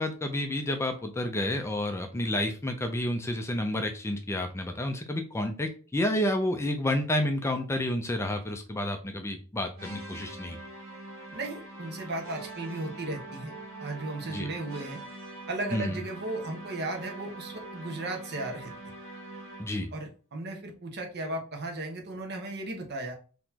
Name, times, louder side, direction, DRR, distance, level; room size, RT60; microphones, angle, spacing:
voice 1, 0.0-10.6 14.3-14.5 15.7-16.0 19.6-19.9, left 1 dB, 15° left, 5 dB, 0.4 m, -30 dB
sound 1, 9.8-19.9, right 2 dB, 70° right, 1.6 m, -43 dB
voice 2, 11.3-13.5 13.8-15.0 15.5-18.7 19.9-23.1, right 2 dB, 50° right, 2 dB, 1.0 m, -35 dB
4.0 x 2.9 x 2.8 m, 0.37 s
head